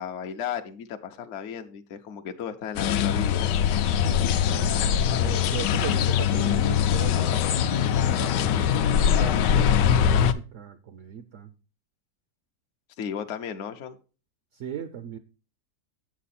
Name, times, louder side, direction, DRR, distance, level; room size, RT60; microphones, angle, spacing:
voice 1, 0.0-3.5 13.0-14.0, left 8 dB, 60° left, 5 dB, 0.8 m, -35 dB
sound 1, 2.8-10.3, left 8 dB, 80° left, 1.2 m, -22 dB
voice 2, 3.9-4.8 5.2-11.5 14.5-15.2, right 9 dB, 70° right, 11 dB, 0.7 m, -38 dB
8.5 x 7.3 x 4.2 m, 0.35 s
omnidirectional pair, 1.9 m